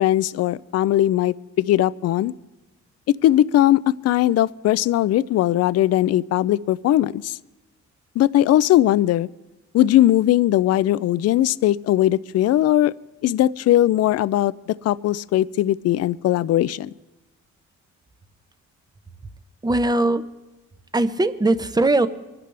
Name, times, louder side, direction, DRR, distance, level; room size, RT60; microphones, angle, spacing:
voice 1, 0.0-2.3 3.2-7.4 8.2-9.3 9.7-12.9 13.2-14.5 14.8-16.9, left 13 dB, 55° left, 19 dB, 0.4 m, -19 dB
voice 2, 19.6-20.2 20.9-22.1, right 2 dB, 15° right, 12 dB, 0.8 m, -20 dB
23.0 x 12.0 x 3.4 m, 1.1 s
cardioid pair, 90°, 30 cm